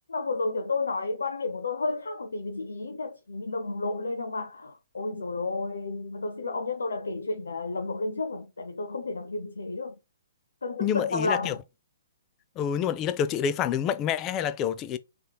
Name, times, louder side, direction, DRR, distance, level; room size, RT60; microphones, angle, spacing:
voice 1, 0.1-9.9 10.6-11.6, left 3 dB, 80° left, 0.5 m, -31 dB
voice 2, 10.8-11.6 12.6-15.0, left 9 dB, 25° left, 0.4 m, -27 dB
3.6 x 2.9 x 2.3 m
hypercardioid pair, 130°, 0 cm